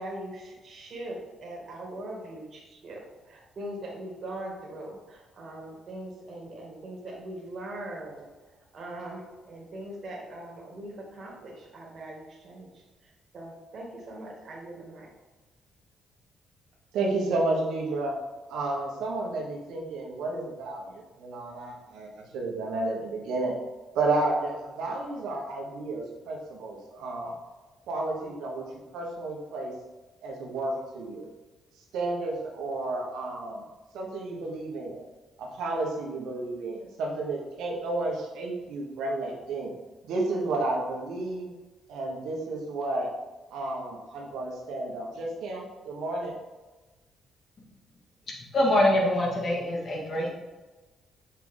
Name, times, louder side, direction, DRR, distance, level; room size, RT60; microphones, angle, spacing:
voice 1, 0.0-15.1, right 1 dB, 50° right, -2 dB, 2.2 m, -41 dB
voice 2, 16.9-18.1 18.5-23.5 23.9-27.3 27.9-28.7 28.9-29.7 30.2-31.3 31.9-33.7 33.9-35.1 35.4-39.7 40.0-41.5 41.9-43.1 43.5-46.4, right 2 dB, 85° right, -1 dB, 1.6 m, -31 dB
voice 3, 48.5-50.3, left 1 dB, 50° left, -2 dB, 1.7 m, -24 dB
6.1 x 5.7 x 3.7 m, 1.2 s
cardioid pair, 90°, 0 cm